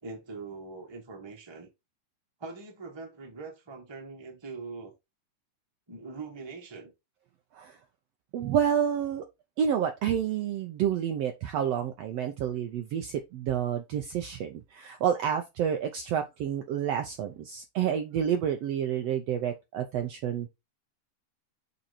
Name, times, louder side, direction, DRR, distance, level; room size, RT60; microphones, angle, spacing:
voice 1, 0.0-1.7 2.4-4.9 5.9-6.9, right 4 dB, 15° right, 1.0 m, -42 dB
voice 2, 8.3-9.2 9.6-20.5, right 9 dB, 70° right, 1.6 m, -29 dB
7.4 x 4.1 x 4.2 m
omnidirectional pair, 3.6 m